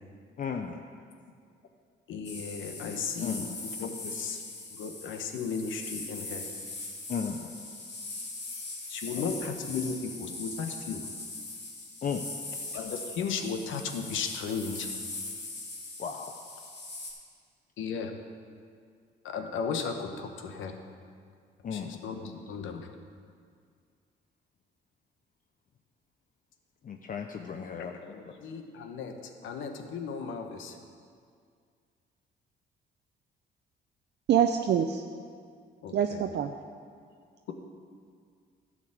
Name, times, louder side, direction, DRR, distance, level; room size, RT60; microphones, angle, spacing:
voice 1, 0.4-0.8 3.2-3.6 7.1-7.5 9.1-9.2 12.0-12.3 16.0-16.4 21.6-22.0 26.8-27.9, left 6 dB, 45° left, 4 dB, 0.6 m, -35 dB
voice 2, 2.1-4.4 4.7-6.4 8.9-11.0 12.7-14.9 17.8-18.2 19.2-20.8 21.7-22.9 27.8-30.8 35.8-36.3 36.6-36.7, left 5 dB, 80° left, 5 dB, 1.0 m, -35 dB
sound 1, 2.2-17.1, left 2 dB, 60° left, 2.5 m, -41 dB
voice 3, 34.3-35.0 35.9-36.5, right 9 dB, 60° right, 5 dB, 0.5 m, -25 dB
12.0 x 5.0 x 7.9 m, 2.1 s
cardioid pair, 90°, 20 cm